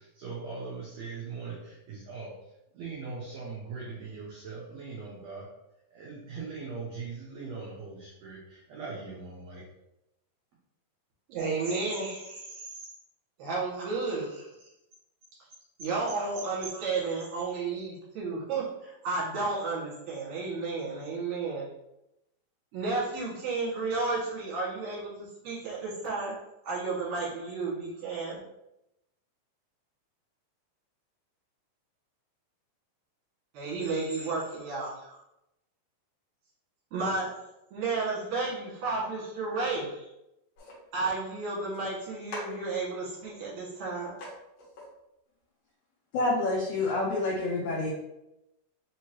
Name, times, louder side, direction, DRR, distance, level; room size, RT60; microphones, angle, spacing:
voice 1, 0.0-5.5 5.9-9.6, right 4 dB, 80° right, -5 dB, 1.5 m, -40 dB
voice 2, 11.3-12.9 13.4-14.4 15.8-21.7 22.7-26.4 26.6-28.4 33.5-35.2 36.9-37.5 37.7-40.1 40.9-44.1, right 3 dB, 60° right, -7 dB, 2.6 m, -32 dB
sound 1, 40.6-40.8 41.7-41.8 42.3-43.3 43.8-43.9 44.2-44.3 44.6-44.9, left 1 dB, 55° left, 2.1 m, -44 dB
voice 3, 46.1-47.9, left 2 dB, 80° left, -3 dB, 1.7 m, -28 dB
5.4 x 2.9 x 3.0 m, 0.87 s
omnidirectional pair, 4.2 m